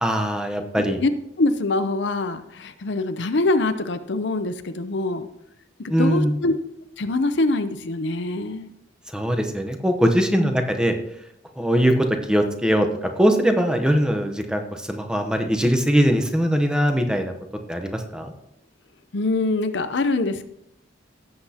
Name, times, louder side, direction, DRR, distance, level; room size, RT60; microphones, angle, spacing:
voice 1, 0.0-1.0 5.9-6.3 9.1-11.0 11.6-17.3 17.7-18.3, equal, 5° right, 5 dB, 0.9 m, -21 dB
voice 2, 1.4-5.3 5.8-6.5 7.0-8.7 10.3-10.5 19.1-20.4, left 2 dB, 70° left, 10 dB, 0.6 m, -24 dB
16.0 x 7.7 x 2.9 m, 0.79 s
head